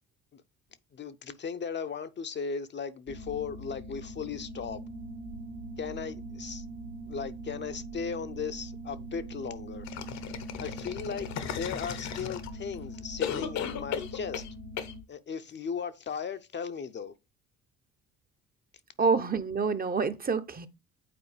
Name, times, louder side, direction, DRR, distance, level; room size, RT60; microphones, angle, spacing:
voice 1, 0.9-4.8 5.8-6.6 7.1-9.9 10.6-14.4 15.1-17.1, left 6 dB, 35° left, 0.7 m, -37 dB
sound 1, 3.1-15.0, right 1 dB, 70° right, 1.3 m, -42 dB
sound 2, 9.9-12.7 13.2-14.5 14.8-14.9, left 8 dB, 60° left, 1.0 m, -36 dB
voice 2, 19.0-20.7, right 5 dB, 30° right, 0.8 m, -27 dB
8.6 x 4.3 x 3.2 m
hypercardioid pair, 60°, 31 cm